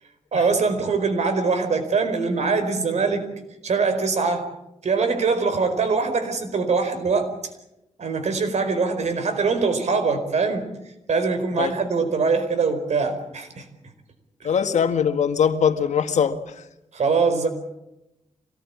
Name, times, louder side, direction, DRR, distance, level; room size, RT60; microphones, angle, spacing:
voice 1, 0.3-3.3 3.6-4.5 4.8-7.3 8.0-10.7 11.1-13.7 14.4-14.5 16.9-17.5, right 4 dB, 75° right, 4.7 m, -23 dB
voice 2, 14.4-16.4, left 7 dB, 90° left, 1.8 m, -21 dB
25.5 x 19.0 x 8.7 m
wide cardioid pair, 90°, 12 cm